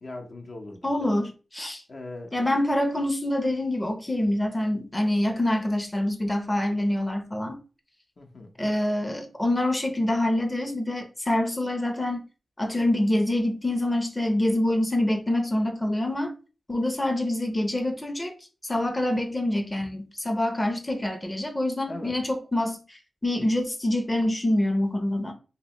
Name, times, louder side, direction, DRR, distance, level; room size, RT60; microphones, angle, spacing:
voice 1, 0.0-1.1 1.9-2.3 8.2-8.5 21.9-22.2, left 2 dB, 60° left, 0.8 m, -39 dB
voice 2, 0.8-1.8 2.3-7.6 8.6-12.2 12.6-16.3 16.7-18.3 18.6-25.3, left 1 dB, 20° left, 0.7 m, -26 dB
3.0 x 2.9 x 3.0 m
cardioid pair, 50°, 0 cm